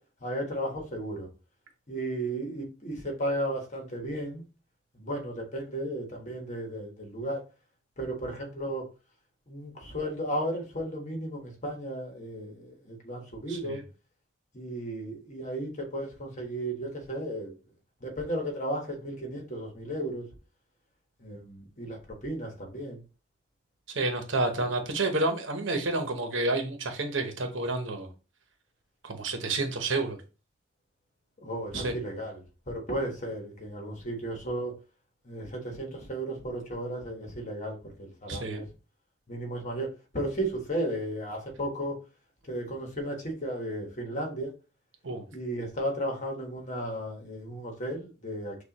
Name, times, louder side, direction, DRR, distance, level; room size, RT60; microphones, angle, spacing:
voice 1, 0.2-1.3 1.9-4.4 4.9-7.4 8.0-8.9 9.5-13.8 14.5-17.5 18.0-20.3 21.2-23.0 31.4-34.7 35.2-38.6 39.3-39.9 40.1-42.0 42.4-44.5 45.3-48.6, right 1 dB, 40° left, 1.3 m, -34 dB
voice 2, 13.5-13.8 23.9-28.1 29.0-30.2 31.7-31.9 38.3-38.6 45.0-45.2, right 2 dB, 80° right, 1.0 m, -29 dB
6.5 x 2.5 x 3.0 m
head